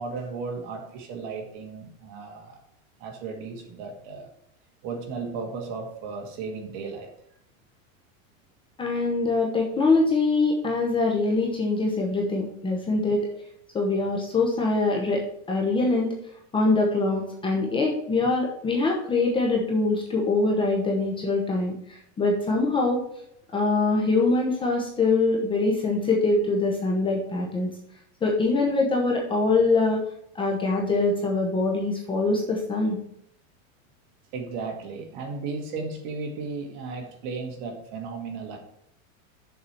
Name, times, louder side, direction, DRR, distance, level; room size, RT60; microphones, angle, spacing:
voice 1, 0.0-2.6 3.0-4.3 4.8-7.1 34.3-38.6, right 4 dB, 40° right, 3 dB, 1.9 m, -35 dB
voice 2, 8.8-13.3 13.7-16.1 16.5-23.0 23.5-27.7 28.2-30.0 30.3-33.0, left 3 dB, 10° left, -1 dB, 0.9 m, -23 dB
6.8 x 4.9 x 5.9 m, 0.73 s
supercardioid pair, 160°, 41 cm